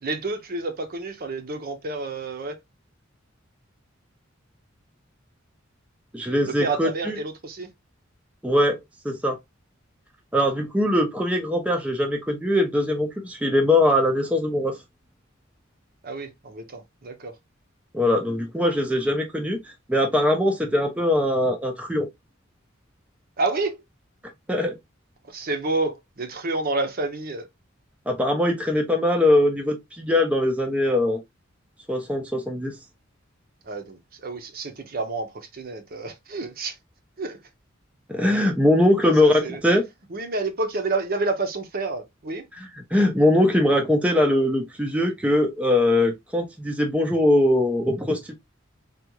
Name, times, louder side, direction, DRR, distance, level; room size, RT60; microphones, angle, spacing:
voice 1, 0.0-2.5 6.4-7.7 16.0-17.3 23.4-23.8 25.3-27.5 33.7-36.8 37.2-37.4 39.0-39.6 40.1-42.4, right 3 dB, 50° right, 0.7 m, -29 dB
voice 2, 6.1-7.2 8.4-8.8 9.0-9.4 10.3-14.8 17.9-22.1 24.5-24.8 28.1-31.2 31.9-32.8 38.1-39.9 42.6-48.4, left 1 dB, 5° right, 0.5 m, -21 dB
3.5 x 2.4 x 2.8 m
head